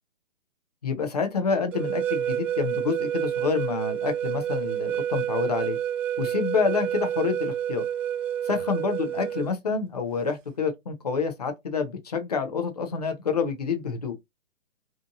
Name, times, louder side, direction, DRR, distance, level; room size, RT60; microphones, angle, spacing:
voice 1, 0.8-5.8 6.2-7.8 8.4-14.2, left 5 dB, 35° left, 0.4 m, -28 dB
sound 1, 1.7-9.5, right 10 dB, 70° right, 0.6 m, -29 dB
2.6 x 2.4 x 2.5 m
hypercardioid pair, 150°, 40 cm